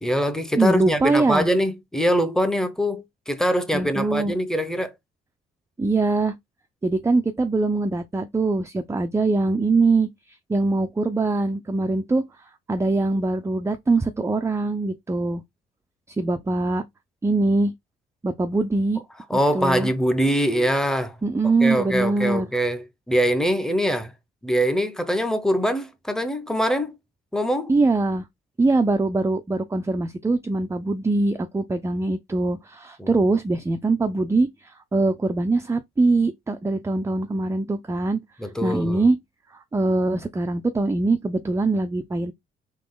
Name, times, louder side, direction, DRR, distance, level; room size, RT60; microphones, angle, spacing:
voice 1, 0.0-4.9 19.3-21.2 21.6-24.1 24.4-27.0 27.3-27.7 33.0-33.1 38.4-39.1, equal, 5° left, 0.8 m, -23 dB
voice 2, 0.5-1.5 3.7-4.3 5.8-6.3 6.8-10.1 10.5-12.2 12.7-15.4 16.1-16.8 17.2-17.7 18.2-19.0 19.3-19.9 21.2-22.5 27.7-28.2 28.6-38.2 38.6-39.2 39.5-42.3, right 3 dB, 15° right, 0.4 m, -22 dB
3.8 x 2.9 x 3.8 m
cardioid pair, 90°, 20 cm